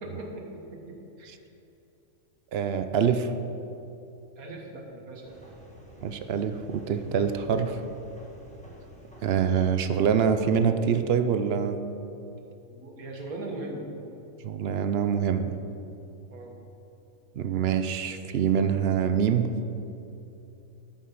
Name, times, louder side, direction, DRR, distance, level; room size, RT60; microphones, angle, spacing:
voice 1, 0.0-1.3 4.4-5.4 12.7-13.9 16.3-16.6, right 2 dB, 85° right, 1 dB, 1.8 m, -39 dB
voice 2, 2.5-3.3 6.0-7.8 9.2-11.8 14.4-15.6 17.4-19.5, right 7 dB, 60° right, 9 dB, 0.7 m, -25 dB
sound 1, 5.2-10.3, right 1 dB, 5° left, 1.5 m, -49 dB
13.0 x 6.0 x 5.7 m, 2.9 s
omnidirectional pair, 1.5 m